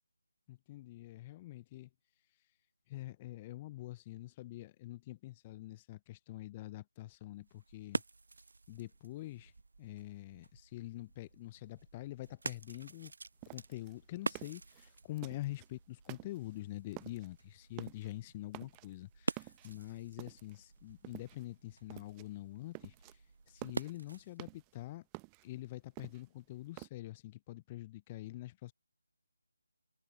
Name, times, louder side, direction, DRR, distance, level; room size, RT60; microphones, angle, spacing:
voice 1, 0.5-1.9 2.9-8.0 8.7-9.5 9.8-13.1 13.5-23.2 23.5-25.1 25.4-28.7, left 16 dB, 20° left, 0.3 m, -45 dB
sound 1, 7.3-24.5, right 3 dB, 55° right, 0.8 m, -46 dB
sound 2, 13.4-15.7 16.0-16.6 16.9-17.3 17.6-18.2 18.5-19.0 19.4-20.6 21.0-21.6 21.9-22.3 22.6-23.1 23.5-24.8 25.1-26.9, right 39 dB, 15° right, 0.7 m, -50 dB
figure-of-eight pair, 155°, 0 cm